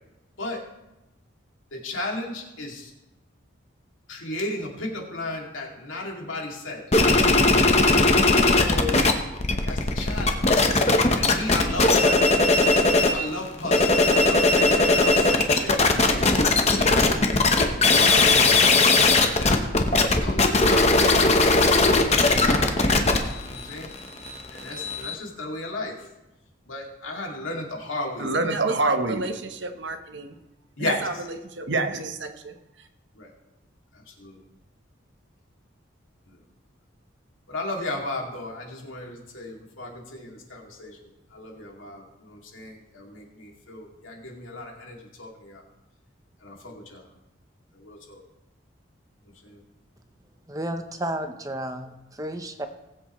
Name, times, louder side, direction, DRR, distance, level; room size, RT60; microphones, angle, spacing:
voice 1, 1.7-2.9 4.1-6.8 7.6-7.8 8.5-9.0 9.6-10.6 11.2-12.7 13.1-17.1 17.6-18.7 19.3-19.6 20.1-23.1 23.4-23.9 24.5-26.1 26.6-28.3 30.8-31.2 33.1-33.3 33.9-34.4 36.3-36.4 37.5-45.6 46.4-47.1 47.7-48.2 49.2-49.6, left 2 dB, 85° left, 2.5 m, -35 dB
sound 1, 6.9-9.1 9.4-13.2 13.6-25.1, left 3 dB, 35° left, 0.9 m, -19 dB
voice 2, 28.2-30.4 30.8-31.1 31.4-32.5, right 2 dB, 65° right, 1.0 m, -27 dB
voice 3, 50.5-52.7, right 1 dB, 15° right, 0.7 m, -32 dB
19.5 x 8.0 x 3.1 m
head